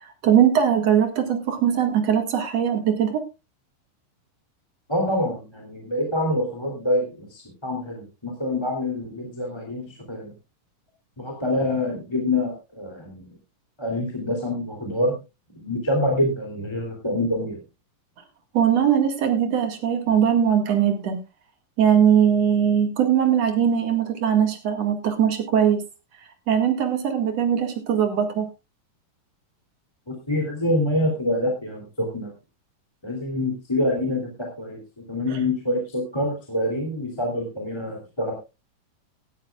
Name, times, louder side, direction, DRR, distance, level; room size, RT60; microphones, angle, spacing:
voice 1, 0.2-3.2 18.5-21.2 21.8-25.8 26.5-28.5 35.3-35.4, right 8 dB, 50° right, 5 dB, 2.9 m, -20 dB
voice 2, 4.9-10.3 11.2-13.3 13.8-15.2 15.5-17.6 30.1-32.3 33.0-38.3, left 1 dB, 10° left, 0 dB, 2.5 m, -26 dB
18.0 x 12.0 x 2.4 m, 0.26 s
omnidirectional pair, 4.0 m